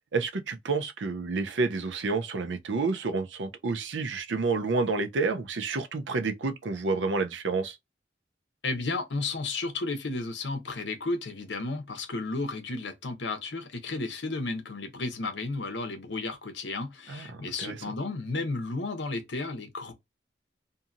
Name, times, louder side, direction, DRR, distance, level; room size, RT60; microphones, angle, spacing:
voice 1, 0.1-7.8 17.1-17.3 17.6-17.8, right 4 dB, 85° right, 0.5 m, -29 dB
voice 2, 8.6-19.9, left 3 dB, 75° left, 0.8 m, -33 dB
2.7 x 2.6 x 2.4 m
head